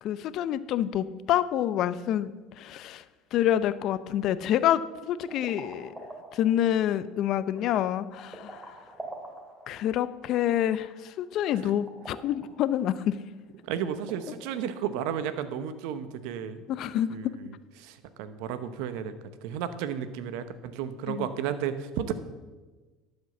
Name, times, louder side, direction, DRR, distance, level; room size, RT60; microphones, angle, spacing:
voice 1, 0.0-3.0 3.3-8.7 9.7-13.1 16.7-17.2 21.1-21.3, left 11 dB, 60° left, 15 dB, 0.6 m, -27 dB
sound 1, 5.1-14.7, right 1 dB, 10° right, 2.5 m, -47 dB
voice 2, 13.6-16.6 17.1-17.3 17.8-19.1 19.4-22.1, right 9 dB, 75° right, 12 dB, 0.9 m, -33 dB
12.0 x 5.3 x 7.1 m, 1.3 s
supercardioid pair, 85°, 0 cm